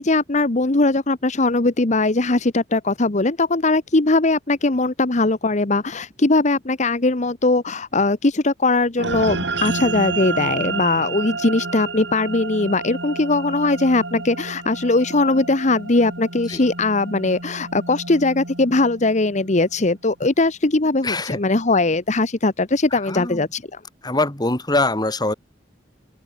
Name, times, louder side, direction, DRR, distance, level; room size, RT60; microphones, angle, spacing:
voice 1, 0.0-23.8, left 2 dB, 40° left, 1.1 m, -20 dB
sound 1, 9.0-19.6, right 3 dB, 80° right, 4.0 m, -30 dB
voice 2, 21.0-21.4 22.9-23.5 24.0-25.3, left 2 dB, 25° left, 2.9 m, -23 dB
open air
head